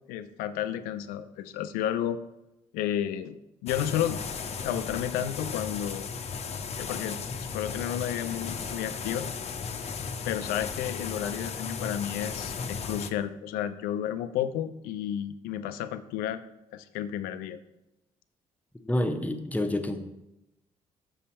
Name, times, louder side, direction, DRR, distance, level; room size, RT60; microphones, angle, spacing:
voice 1, 0.1-2.2 2.7-3.4 3.6-4.2 4.6-6.1 6.8-9.3 10.2-16.4 16.7-17.6, left 10 dB, 85° left, 11 dB, 0.4 m, -32 dB
sound 1, 3.7-13.1, left 5 dB, 45° left, 0.6 m, -35 dB
voice 2, 18.8-20.0, left 1 dB, 10° left, 7 dB, 0.8 m, -28 dB
6.1 x 5.6 x 4.3 m, 0.91 s
supercardioid pair, 60°, 15 cm